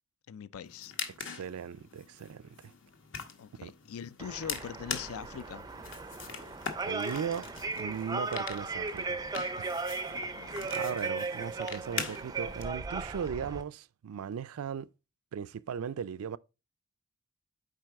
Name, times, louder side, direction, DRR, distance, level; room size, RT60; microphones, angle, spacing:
voice 1, 0.3-0.9 3.4-5.7 10.2-10.7, left 7 dB, 80° left, 0.4 m, -42 dB
sound 1, 0.6-12.6, left 6 dB, 60° left, 1.1 m, -43 dB
voice 2, 1.2-2.7 3.6-3.7 6.8-9.2 9.6-9.7 10.0-10.3 10.7-14.9 15.3-16.4, right 7 dB, 85° right, 0.4 m, -38 dB
sound 2, 4.2-13.6, right 3 dB, 15° right, 0.4 m, -37 dB
7.6 x 4.7 x 3.5 m
head